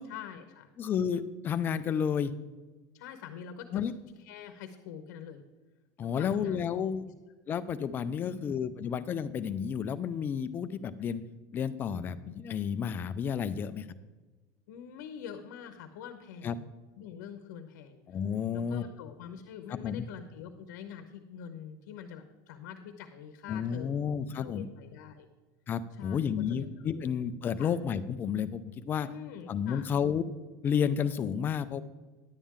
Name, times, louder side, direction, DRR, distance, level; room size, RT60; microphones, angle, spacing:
voice 1, 0.1-0.7 2.9-3.9 4.2-5.4 6.0-6.7 8.2-8.6 14.7-16.7 17.0-18.0 18.5-24.0 24.3-25.3 25.9-27.1 27.6-27.7 29.0-29.9, left 8 dB, 80° left, 7 dB, 0.8 m, -45 dB
voice 2, 0.8-2.3 3.7-3.9 6.0-7.0 7.5-11.2 11.5-13.9 16.4-16.6 18.1-18.8 19.7-20.1 23.5-24.7 25.7-29.1 29.5-30.2 30.6-31.8, left 7 dB, 20° left, 12 dB, 0.3 m, -31 dB
10.5 x 8.6 x 3.7 m, 1.2 s
cardioid pair, 170°, 10 cm